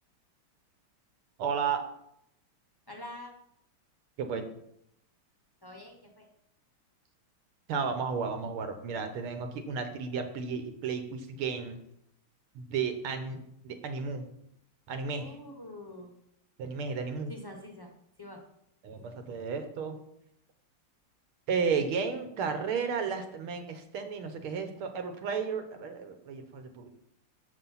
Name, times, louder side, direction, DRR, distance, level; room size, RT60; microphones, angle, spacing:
voice 1, 1.4-1.8 4.2-4.4 7.7-11.8 12.6-14.3 14.9-15.4 16.6-17.3 18.8-20.0 21.5-26.9, right 5 dB, 80° right, 7 dB, 1.8 m, -33 dB
voice 2, 2.9-3.3 5.6-6.3 15.1-16.1 17.3-17.9 18.2-18.4, left 1 dB, 25° left, 2 dB, 0.5 m, -45 dB
7.1 x 5.7 x 5.5 m, 0.76 s
omnidirectional pair, 2.4 m